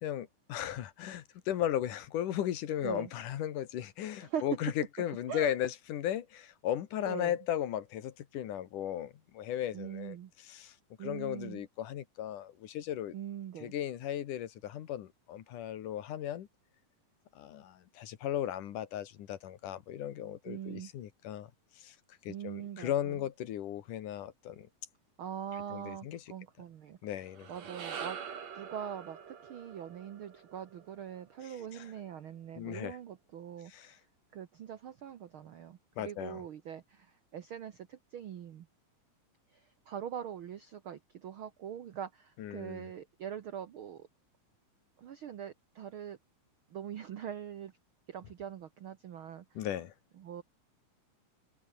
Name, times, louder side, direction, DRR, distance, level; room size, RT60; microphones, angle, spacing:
voice 1, 0.0-10.2 10.5-10.7 11.0-13.1 13.6-16.5 17.4-21.5 21.8-22.0 22.2-24.7 25.7-26.2 27.0-27.5 31.7-31.9 32.6-33.0 33.7-33.9 36.0-36.4 42.4-42.9 49.6-49.9, left 11 dB, 70° left, 2.9 m, -36 dB
voice 2, 9.7-10.3 11.0-11.6 13.1-13.7 20.4-20.9 22.3-23.2 25.2-27.0 27.5-34.0 34.3-38.7 39.5-44.1 45.0-46.2 46.7-47.7 48.1-49.7 50.2-50.4, right 9 dB, 80° right, 1.1 m, -43 dB
sound 1, 27.2-31.7, right 7 dB, 55° right, 3.6 m, -45 dB
omnidirectional pair, 4.0 m